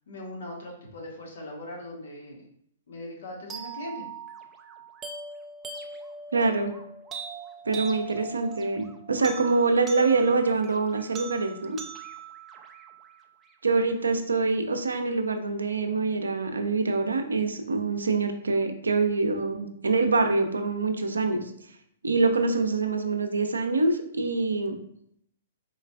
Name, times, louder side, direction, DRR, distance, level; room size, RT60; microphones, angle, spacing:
voice 1, 0.1-2.4 2.9-4.0, left 1 dB, 65° left, -1 dB, 1.2 m, -40 dB
sound 1, 3.5-13.5, right 5 dB, 20° right, 0.4 m, -41 dB
voice 2, 6.3-6.7 7.7-11.8 13.6-21.4 22.0-24.8, right 3 dB, 85° right, 6 dB, 0.5 m, -25 dB
4.3 x 3.1 x 2.2 m, 0.70 s
hypercardioid pair, 120°, 0 cm